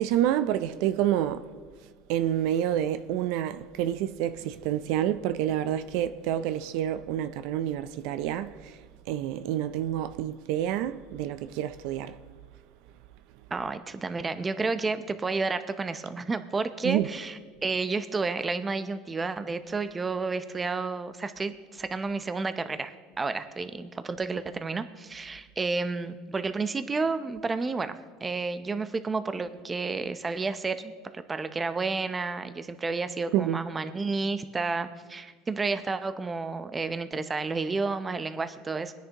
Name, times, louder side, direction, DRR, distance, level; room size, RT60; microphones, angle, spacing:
voice 1, 0.0-1.5 2.1-8.8 9.1-12.2 16.8-17.1 33.3-33.6, right 11 dB, 70° right, 0.5 m, -28 dB
voice 2, 13.5-27.9 28.2-38.9, right 4 dB, 20° right, 0.6 m, -31 dB
21.5 x 10.0 x 3.0 m
supercardioid pair, 120°, 0 cm